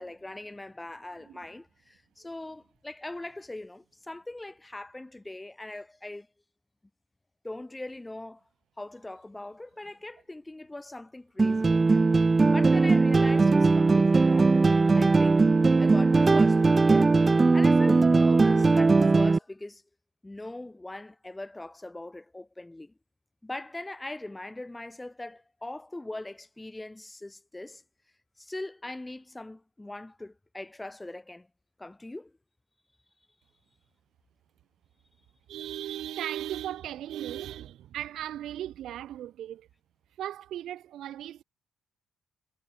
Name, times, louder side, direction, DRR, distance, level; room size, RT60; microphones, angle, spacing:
voice 1, 0.0-6.3 7.4-8.4 8.8-12.0 12.5-14.7 14.9-15.4 15.8-17.1 17.5-19.8 20.2-22.9 23.4-27.8 28.4-31.5 31.8-32.3, left 2 dB, 15° left, 5.1 m, -41 dB
sound 1, 11.4-19.4, right 3 dB, 25° right, 0.5 m, -20 dB
voice 2, 35.5-39.7 40.2-41.4, right 12 dB, 75° right, 3.3 m, -37 dB
cardioid pair, 90°, 0 cm